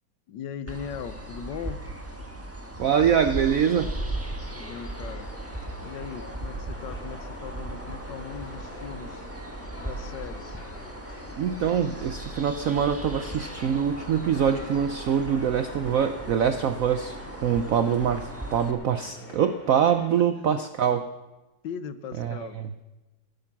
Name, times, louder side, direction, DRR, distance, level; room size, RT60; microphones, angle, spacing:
voice 1, 0.3-1.8 4.5-5.3 5.8-9.3 9.8-10.6 20.4-20.5 21.6-22.6, left 7 dB, 70° left, 12 dB, 1.4 m, -39 dB
sound 1, 0.7-18.7, right 1 dB, 10° right, 1.0 m, -37 dB
voice 2, 2.8-3.9 11.4-21.1 22.2-22.7, right 8 dB, 75° right, 9 dB, 0.7 m, -24 dB
sound 2, 3.7-20.1, left 1 dB, 30° left, 2.5 m, -46 dB
17.0 x 9.2 x 7.1 m, 1.1 s
omnidirectional pair, 2.1 m